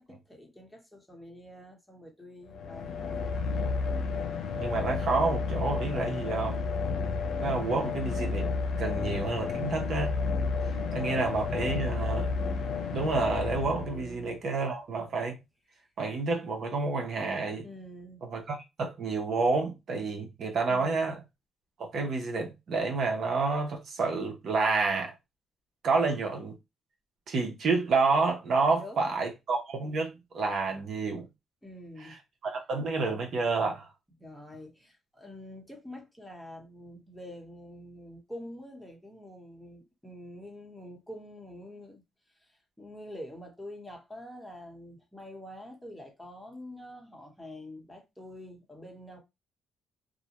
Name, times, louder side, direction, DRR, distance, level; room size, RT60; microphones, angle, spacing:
voice 1, 0.0-3.2 10.6-11.5 13.7-14.4 17.6-18.2 20.7-21.2 28.7-29.2 31.6-32.2 34.2-42.0 42.4-49.2, left 1 dB, 5° left, 1.0 m, -46 dB
sound 1, 2.5-14.4, left 4 dB, 75° left, 0.5 m, -31 dB
voice 2, 4.6-6.7 7.4-8.5 8.8-10.1 10.9-12.3 12.9-15.4 16.0-17.6 18.2-21.2 21.8-25.1 25.8-26.5 27.3-31.3 32.1-32.2 32.4-33.9, right 4 dB, 60° right, 0.7 m, -29 dB
2.5 x 2.1 x 2.9 m
cardioid pair, 90°, 0 cm